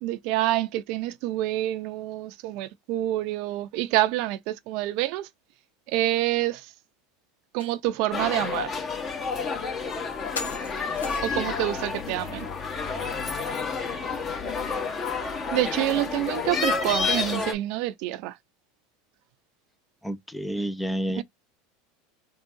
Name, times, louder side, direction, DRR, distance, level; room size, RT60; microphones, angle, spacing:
voice 1, 0.0-5.3 5.9-6.7 7.5-8.7 11.2-12.5 13.7-13.8 15.5-18.3 21.1-21.2, right 15 dB, 60° right, 0.6 m, -27 dB
sound 1, 7.6-7.7 8.2-8.3 9.3-9.4 10.4-11.5, left 5 dB, 90° left, 1.0 m, -37 dB
sound 2, 8.1-17.5, left 4 dB, 35° left, 1.5 m, -30 dB
voice 2, 20.0-21.2, equal, 5° left, 0.5 m, -29 dB
3.8 x 2.4 x 3.8 m
hypercardioid pair, 95°, 0 cm